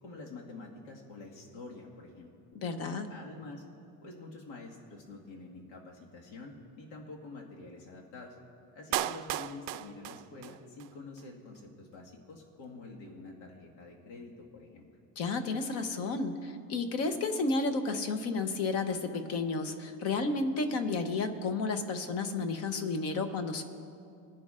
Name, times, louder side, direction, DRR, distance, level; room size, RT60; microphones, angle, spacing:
voice 1, 0.0-2.3 3.1-3.6 4.0-8.3 8.7-14.9, left 3 dB, 85° left, -2 dB, 1.8 m, -47 dB
voice 2, 2.5-3.1 15.2-23.6, left 3 dB, 40° left, 8 dB, 0.8 m, -32 dB
Clapping, 8.9-10.9 11.2-11.3, right 14 dB, 80° right, 0.5 m, -35 dB
21.5 x 10.5 x 2.5 m, 2.4 s
cardioid pair, 170°, 38 cm